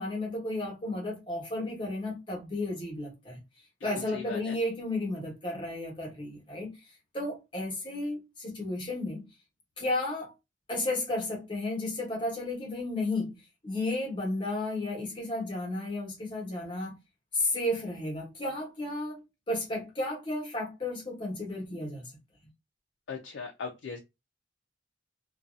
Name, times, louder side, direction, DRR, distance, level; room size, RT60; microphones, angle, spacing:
voice 1, 0.0-3.4 3.8-6.7 7.1-9.2 9.8-10.3 10.7-13.3 13.6-16.9 17.3-22.0, left 2 dB, 25° left, 1.1 m, -33 dB
voice 2, 3.8-4.6 23.1-24.0, left 5 dB, 80° left, 0.5 m, -39 dB
2.6 x 2.3 x 2.3 m
head